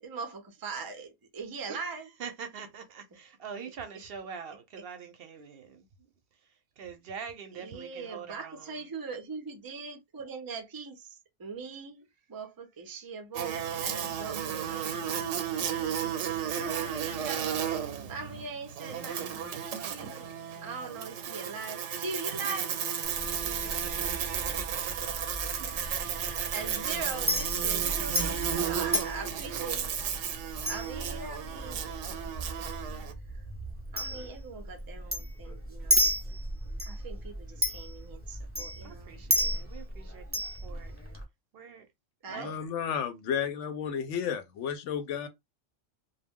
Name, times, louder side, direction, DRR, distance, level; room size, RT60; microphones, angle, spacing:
voice 1, 0.0-2.1 7.6-17.5 18.1-19.4 19.8-22.7 25.8-26.3 26.5-27.9 28.6-29.9 30.7-32.3 32.6-32.7 33.9-36.1 36.8-39.2 42.2-42.5, right 4 dB, 35° right, 0.3 m, -41 dB
voice 2, 2.2-6.1 6.4-8.9 22.4-22.6 23.3-23.7 27.7-29.0 29.4-29.9 36.2-36.5 38.8-41.0 41.5-41.9 42.3-42.5, right 6 dB, 65° right, 0.7 m, -44 dB
Buzz, 13.3-33.1, right 8 dB, 90° right, 0.9 m, -33 dB
Chink clink, 23.0-41.2, equal, 15° right, 0.7 m, -34 dB
voice 3, 42.3-45.3, left 8 dB, 85° left, 0.9 m, -32 dB
2.3 x 2.1 x 3.5 m
omnidirectional pair, 1.2 m